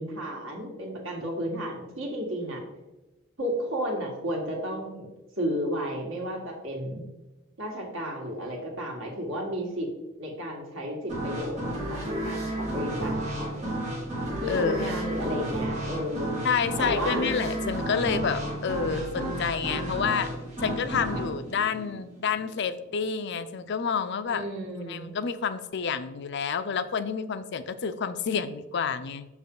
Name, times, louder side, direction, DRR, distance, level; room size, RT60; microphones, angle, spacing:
voice 1, 0.0-2.6 3.4-5.1 5.4-7.0 7.6-9.9 10.2-11.6 11.9-12.0 12.2-13.7 14.4-16.4 16.8-17.2 24.3-25.1, equal, 75° right, -1 dB, 2.1 m, -32 dB
sound 1, 11.1-22.6, right 1 dB, 35° right, 2.1 m, -32 dB
voice 2, 14.5-15.1 16.4-20.3 20.6-24.4 24.8-29.3, left 6 dB, 60° left, 12 dB, 0.5 m, -29 dB
6.6 x 6.0 x 3.9 m, 1.0 s
head